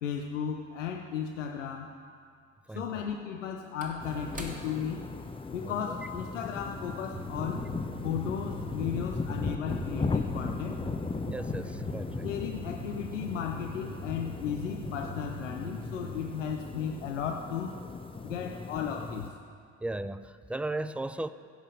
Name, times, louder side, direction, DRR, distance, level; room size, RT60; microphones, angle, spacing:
voice 1, 0.0-1.9 2.7-5.1 5.5-7.7 8.0-10.8 12.2-17.7 18.2-19.3, left 7 dB, 90° left, 3 dB, 0.6 m, -35 dB
voice 2, 2.7-3.1 5.6-6.0 11.3-12.3 19.8-21.3, right 2 dB, 5° right, 13 dB, 0.3 m, -36 dB
Slam / Wood, 2.9-7.6 7.9-8.1, right 1 dB, 20° right, 2.1 m, -49 dB
sound 1, 4.0-19.3, left 3 dB, 15° left, 0.8 m, -37 dB
sound 2, 7.1-16.4, right 2 dB, 80° right, 1.1 m, -44 dB
16.0 x 5.5 x 6.2 m, 2.2 s
figure-of-eight pair, 50°, 36 cm